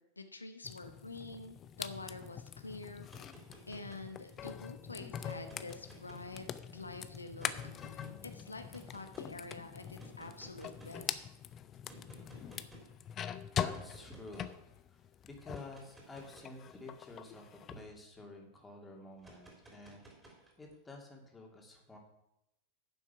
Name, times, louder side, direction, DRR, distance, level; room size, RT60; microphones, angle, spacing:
voice 1, 0.0-3.4 3.7-6.5 6.7-7.5 7.8-11.2, left 3 dB, 80° left, 7 dB, 0.8 m, -47 dB
sound 1, 0.6-15.8 16.1-17.8, left 9 dB, 30° left, 0.6 m, -43 dB
sound 2, 3.0-4.5 5.2-6.7 7.4-8.1 8.7-9.3 10.0-11.1 11.9-13.0 13.7-14.6 15.4-18.2 19.2-20.8, right 2 dB, 10° right, 3.6 m, -57 dB
voice 2, 13.6-14.6 14.9-22.0, left 2 dB, 10° left, 0 dB, 2.5 m, -51 dB
9.9 x 7.4 x 5.8 m, 0.87 s
figure-of-eight pair, 90°, 0 cm